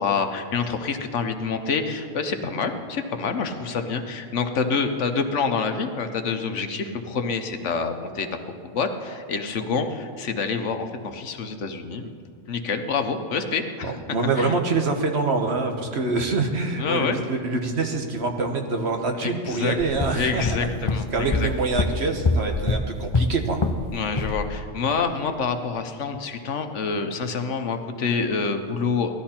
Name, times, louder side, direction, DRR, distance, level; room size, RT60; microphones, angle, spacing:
voice 1, 0.0-8.3 8.6-12.1 12.5-13.9 14.4-14.6 16.8-17.2 19.2-19.8 20.1-21.5 23.9-29.1, left 5 dB, 65° left, 7 dB, 1.2 m, -27 dB
voice 2, 13.8-20.5 20.8-23.6, right 3 dB, 55° right, 4 dB, 1.4 m, -25 dB
sound 1, 19.8-23.9 24.2-24.5, left 3 dB, 35° left, 0.5 m, -25 dB
17.0 x 12.5 x 4.4 m, 2.2 s
omnidirectional pair, 1.4 m